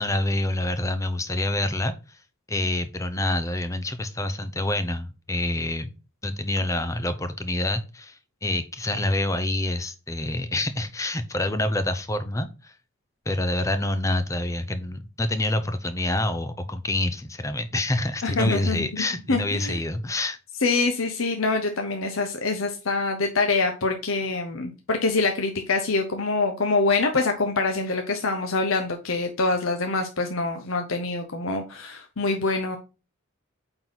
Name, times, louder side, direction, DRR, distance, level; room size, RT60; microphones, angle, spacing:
voice 1, 0.0-2.2 2.5-5.9 6.2-12.8 13.3-20.4, left 1 dB, 15° left, 10 dB, 0.7 m, -27 dB
voice 2, 18.2-19.8 20.6-32.8, left 3 dB, 75° left, 4 dB, 1.0 m, -25 dB
8.9 x 4.0 x 4.0 m, 0.31 s
head